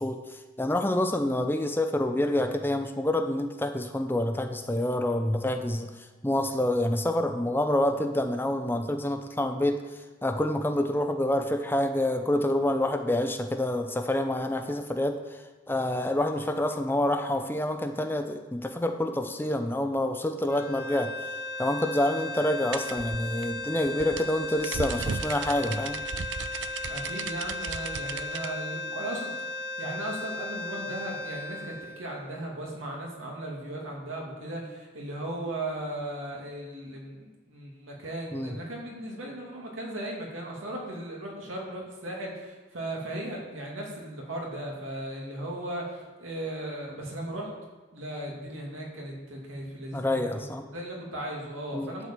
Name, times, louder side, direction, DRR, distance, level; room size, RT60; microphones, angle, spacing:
voice 1, 0.0-21.1 21.6-26.0 38.3-38.6 49.9-50.6 51.7-51.9, left 1 dB, 10° left, 6 dB, 0.5 m, -27 dB
sound 1, 20.5-32.7, left 2 dB, 50° left, 0.9 m, -36 dB
sound 2, 22.7-28.5, right 6 dB, 70° right, 0.5 m, -36 dB
voice 2, 26.9-47.5 47.9-50.5 50.7-52.1, right 1 dB, 90° right, -2 dB, 2.6 m, -37 dB
11.0 x 4.8 x 7.4 m, 1.2 s
head